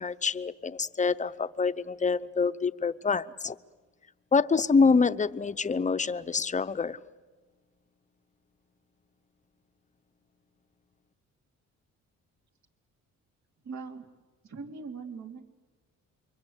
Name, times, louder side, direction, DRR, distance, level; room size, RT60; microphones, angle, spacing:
voice 1, 0.0-3.6 4.3-7.0, left 4 dB, 25° left, 0.8 m, -26 dB
voice 2, 13.6-14.1 14.4-15.4, right 4 dB, 65° right, 3.3 m, -40 dB
28.5 x 23.5 x 8.2 m
cardioid pair, 90°, 30 cm